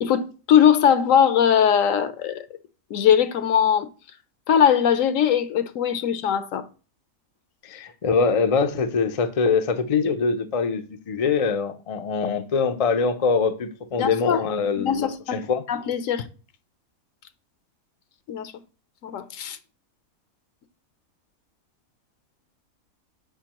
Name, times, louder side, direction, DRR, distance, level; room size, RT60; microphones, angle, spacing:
voice 1, 0.0-2.5 2.9-3.9 4.5-6.6 14.0-14.4 14.8-15.4 15.7-16.2 18.3-18.5 19.0-19.6, left 8 dB, 70° left, 1.0 m, -20 dB
voice 2, 7.6-15.6, left 5 dB, 45° left, 0.4 m, -23 dB
6.8 x 5.0 x 2.9 m
omnidirectional pair, 1.5 m